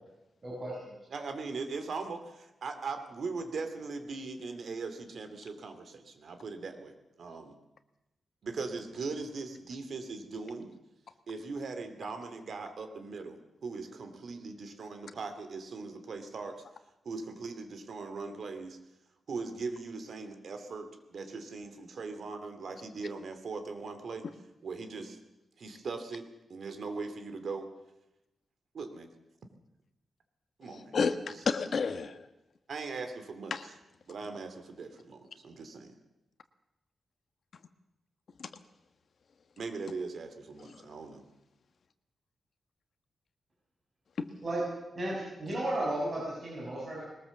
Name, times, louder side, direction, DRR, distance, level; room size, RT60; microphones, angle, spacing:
voice 1, 0.4-1.0 44.4-44.6 44.9-47.0, right 1 dB, 30° right, -5 dB, 6.7 m, -34 dB
voice 2, 1.1-7.5 8.4-10.7 11.3-16.6 17.0-18.8 19.3-24.2 24.6-25.2 25.6-27.7 28.7-29.1 30.6-31.0 32.7-33.5 34.1-35.9 39.6-41.2, right 4 dB, 55° right, 8 dB, 2.6 m, -40 dB
voice 3, 30.7-32.3 33.5-33.6 38.4-38.5 40.6-40.7 44.2-44.3, left 5 dB, 50° left, 9 dB, 1.4 m, -31 dB
21.5 x 19.5 x 7.2 m, 0.94 s
wide cardioid pair, 165°, 0 cm